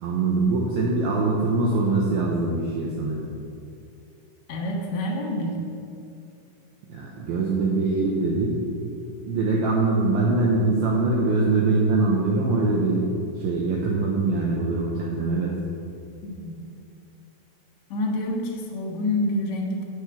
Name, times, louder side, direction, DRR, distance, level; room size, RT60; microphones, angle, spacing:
voice 1, 0.0-3.3 6.9-8.6 9.2-13.0 13.4-15.5, right 3 dB, 75° right, -2 dB, 2.5 m, -23 dB
voice 2, 4.5-5.7 16.2-16.6 17.9-19.8, left 1 dB, 60° left, -1 dB, 2.0 m, -27 dB
8.2 x 6.6 x 6.8 m, 2.5 s
omnidirectional pair, 4.9 m